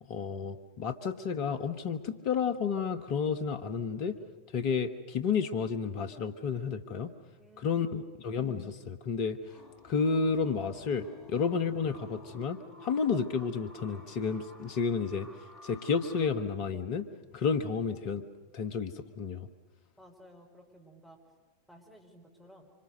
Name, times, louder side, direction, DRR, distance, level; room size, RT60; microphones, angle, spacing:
voice 1, 0.0-4.2 4.5-7.1 7.6-9.4 9.8-15.3 15.6-17.1 17.3-18.2 18.5-19.5, left 5 dB, 45° left, 9 dB, 1.5 m, -31 dB
voice 2, 7.4-8.1 20.0-21.2 21.7-22.7, equal, 5° left, 0 dB, 4.5 m, -56 dB
sound 1, 9.4-16.3, left 2 dB, 30° left, 3.1 m, -52 dB
26.5 x 25.0 x 6.6 m, 1.3 s
figure-of-eight pair, 90°, 0 cm